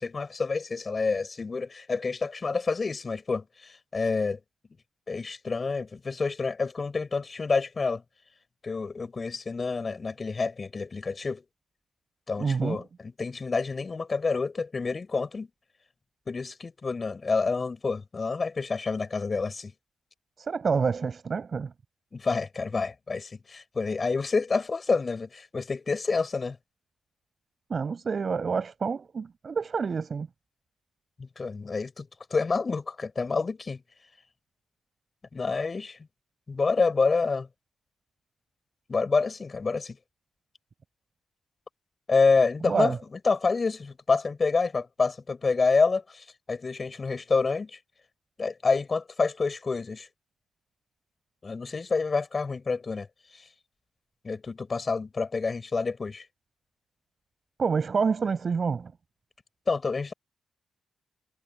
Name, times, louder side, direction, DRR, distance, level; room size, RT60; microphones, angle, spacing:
voice 1, 0.0-4.4 5.1-8.0 8.6-11.4 12.3-15.5 16.3-19.7 22.1-26.6 31.2-33.8 35.3-36.0 36.5-37.5 38.9-40.0 42.1-47.7 48.4-50.1 51.4-53.1 54.2-56.2 59.7-60.1, left 4 dB, 45° left, 7.5 m, -28 dB
voice 2, 12.4-12.8 20.4-21.7 27.7-30.3 42.7-43.0 57.6-58.9, right 5 dB, 50° right, 7.4 m, -27 dB
hypercardioid pair, 45°, 0 cm